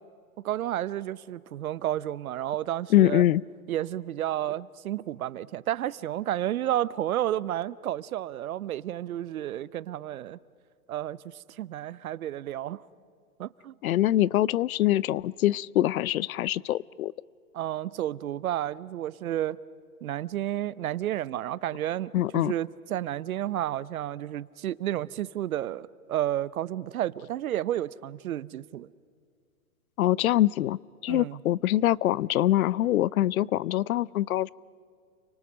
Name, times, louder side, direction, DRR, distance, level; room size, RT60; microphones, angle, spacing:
voice 1, 0.4-3.2 3.7-10.4 10.9-12.8 13.4-13.7 17.5-19.6 20.0-28.9 31.1-31.4, right 12 dB, 70° right, 0.8 m, -31 dB
voice 2, 2.9-3.4 13.8-17.1 22.1-22.5 30.0-34.5, left 14 dB, 70° left, 0.6 m, -24 dB
30.0 x 24.5 x 6.4 m
hypercardioid pair, 135°, 44 cm